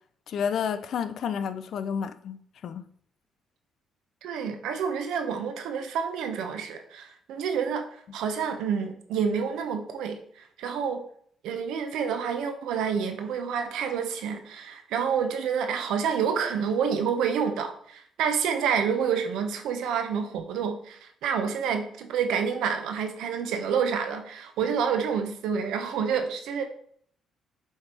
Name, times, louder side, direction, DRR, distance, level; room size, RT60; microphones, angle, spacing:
voice 1, 0.3-2.8 24.6-24.7, left 7 dB, 65° left, 0.5 m, -31 dB
voice 2, 4.2-7.9 8.1-11.0 11.4-26.6, right 7 dB, 85° right, 1.0 m, -28 dB
7.9 x 3.4 x 4.4 m
cardioid pair, 90°, 0 cm